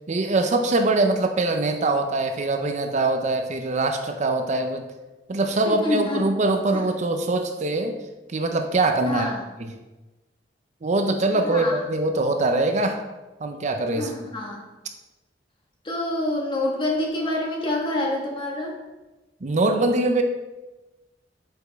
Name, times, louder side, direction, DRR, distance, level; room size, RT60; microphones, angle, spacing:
voice 1, 0.1-4.9 5.3-8.0 8.3-9.3 9.6-9.8 10.8-13.0 13.4-14.1 19.4-20.2, right 2 dB, 40° right, 6 dB, 0.5 m, -23 dB
voice 2, 5.6-6.2 6.7-6.8 9.0-9.4 11.3-11.8 13.9-14.6 15.8-18.8, left 1 dB, 30° left, -1 dB, 1.4 m, -27 dB
8.0 x 5.1 x 3.4 m, 1.1 s
head